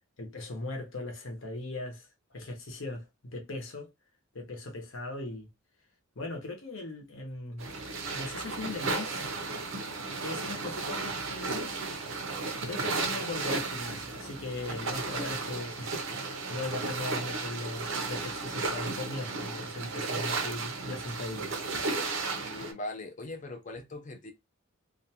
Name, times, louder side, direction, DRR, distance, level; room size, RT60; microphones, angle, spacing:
voice 1, 0.2-3.9 4.3-5.5 6.2-7.7 8.1-9.3 10.2-11.8 12.7-21.5, left 2 dB, 65° left, 0.8 m, -39 dB
sound 1, 7.6-22.7, right 3 dB, 60° right, 0.6 m, -34 dB
voice 2, 22.3-24.3, left 2 dB, 35° left, 0.5 m, -40 dB
2.5 x 2.2 x 2.8 m
head